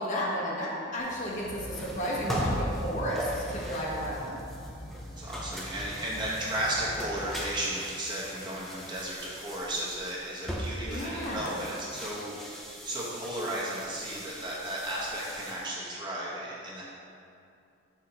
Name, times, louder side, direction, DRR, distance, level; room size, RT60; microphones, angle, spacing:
voice 1, 0.0-4.4 10.8-11.5, equal, 40° left, -4 dB, 0.9 m, -33 dB
sound 1, 1.0-15.7, equal, ahead, 0.6 m, -39 dB
sound 2, 1.3-7.4, equal, 70° right, 1.3 m, -43 dB
voice 2, 5.2-12.4 12.8-16.8, right 1 dB, 25° right, -6 dB, 1.0 m, -34 dB
6.5 x 5.8 x 2.9 m, 2.5 s
head